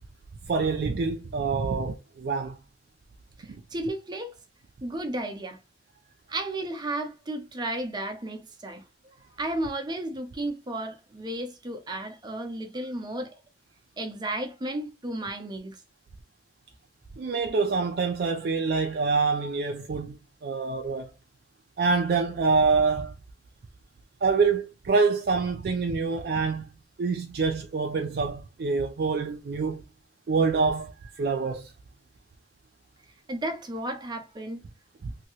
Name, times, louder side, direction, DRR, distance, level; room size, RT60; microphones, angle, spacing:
voice 1, 0.5-2.6 3.5-3.6 17.2-21.1 21.8-23.1 24.2-26.7 27.0-29.8 30.3-31.7 35.0-35.1, right 4 dB, 60° right, 0.4 m, -26 dB
voice 2, 3.4-4.3 4.8-5.6 6.3-13.3 14.0-15.8 33.3-34.6, right 1 dB, 25° right, 0.7 m, -33 dB
2.9 x 2.7 x 2.8 m
head